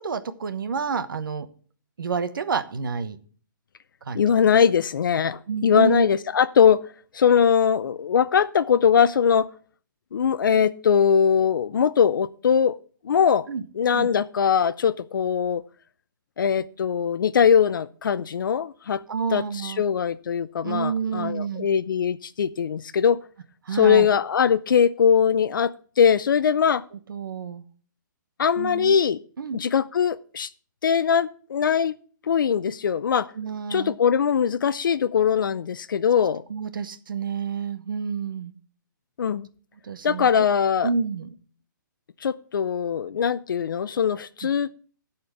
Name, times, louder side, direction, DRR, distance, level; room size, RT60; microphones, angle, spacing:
voice 1, 0.0-1.5 2.0-3.2 4.0-4.2 5.5-6.1 13.5-13.6 13.9-14.1 19.1-19.8 20.6-21.7 23.6-24.1 26.9-27.6 28.6-28.9 29.4-29.6 33.3-34.0 36.5-38.5 39.8-40.3 40.8-41.3 44.4-44.5, right 5 dB, 80° right, 11 dB, 1.1 m, -29 dB
voice 2, 4.1-6.8 7.1-9.5 10.1-12.8 13.0-13.5 13.8-15.6 16.4-19.0 19.3-23.2 23.7-26.8 28.4-29.2 29.5-30.5 30.8-31.9 32.3-33.3 33.7-36.4 39.2-39.5 40.0-40.9 42.2-44.7, left 7 dB, 75° left, 14 dB, 0.5 m, -21 dB
11.5 x 4.4 x 7.6 m, 0.43 s
hypercardioid pair, 170°, 11 cm